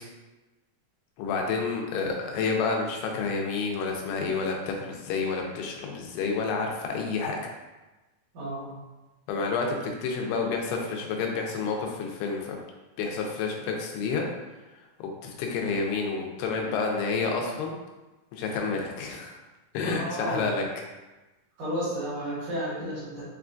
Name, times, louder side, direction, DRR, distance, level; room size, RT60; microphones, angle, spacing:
voice 1, 1.2-7.4 9.3-12.6 13.0-14.3 15.0-17.7 18.3-19.4 19.7-20.6, left 4 dB, 85° left, 1 dB, 2.7 m, -29 dB
voice 2, 8.3-8.7 19.8-20.5 21.6-23.2, equal, 60° right, -11 dB, 2.6 m, -32 dB
6.6 x 2.3 x 2.5 m, 1.1 s
omnidirectional pair, 4.6 m